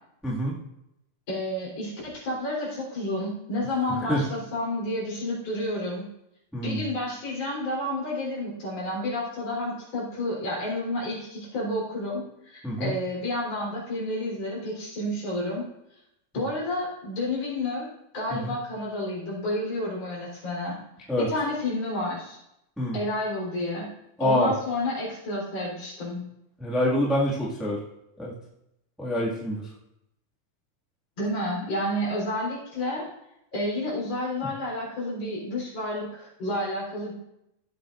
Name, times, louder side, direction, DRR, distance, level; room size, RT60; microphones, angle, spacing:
voice 1, 0.2-0.6 3.9-4.2 6.5-6.9 12.6-12.9 16.3-16.4 18.3-18.5 21.1-21.3 22.8-23.0 24.2-24.5 26.6-27.8 28.2-28.3 29.0-29.7, left 1 dB, ahead, -5 dB, 0.6 m, -26 dB
voice 2, 1.3-6.1 6.6-15.6 16.3-17.9 18.1-20.8 21.3-22.4 22.9-23.9 24.2-26.3 31.2-33.1 33.5-37.1, left 1 dB, 45° left, -6 dB, 5.0 m, -30 dB
16.5 x 8.0 x 2.6 m, 0.83 s
omnidirectional pair, 4.2 m